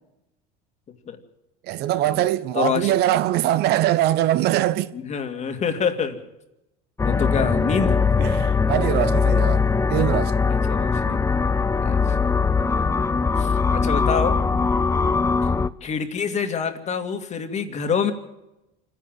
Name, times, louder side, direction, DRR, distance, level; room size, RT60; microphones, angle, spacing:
voice 1, 1.6-5.0 8.2-10.3, right 13 dB, 60° right, 0.9 m, -22 dB
voice 2, 2.5-3.0 4.9-6.2 7.0-8.3 10.7-11.2 11.8-12.2 13.4-14.4 15.8-18.1, left 6 dB, 40° left, 2.4 m, -26 dB
sound 1, 7.0-15.7, left 4 dB, 15° left, 0.6 m, -21 dB
26.5 x 10.5 x 9.2 m
supercardioid pair, 110°, 19 cm